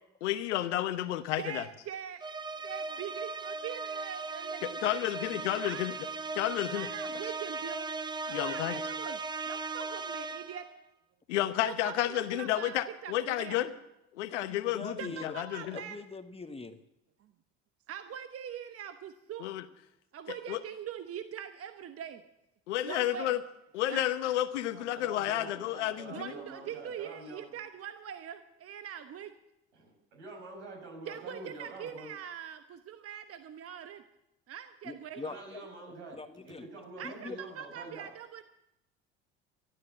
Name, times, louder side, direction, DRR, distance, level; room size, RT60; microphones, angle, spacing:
voice 1, 0.2-1.6 4.6-5.9 6.3-6.9 8.3-8.8 11.3-13.7 14.1-15.8 19.4-19.6 20.5-20.6 22.7-23.4 23.7-26.3, left 13 dB, 85° left, 11 dB, 1.0 m, -31 dB
voice 2, 1.4-2.3 2.6-5.1 5.6-5.9 6.7-7.9 8.3-10.7 11.6-13.6 15.0-16.0 17.2-17.3 17.9-19.5 20.1-22.2 22.8-23.3 23.9-24.1 26.1-29.4 31.1-34.1 34.5-35.2 37.0-38.4, right 9 dB, 40° right, 8 dB, 1.0 m, -42 dB
sound 1, 2.2-10.7, right 4 dB, 15° right, 0.6 m, -38 dB
voice 3, 14.3-15.4 15.7-16.8 34.8-35.6 36.2-36.7 37.0-37.3, left 3 dB, 15° left, 8 dB, 1.3 m, -43 dB
voice 4, 24.7-27.5 29.7-32.1 35.2-38.1, right 2 dB, 80° right, 1 dB, 5.2 m, -47 dB
13.0 x 12.0 x 7.5 m, 0.87 s
hypercardioid pair, 70°, 34 cm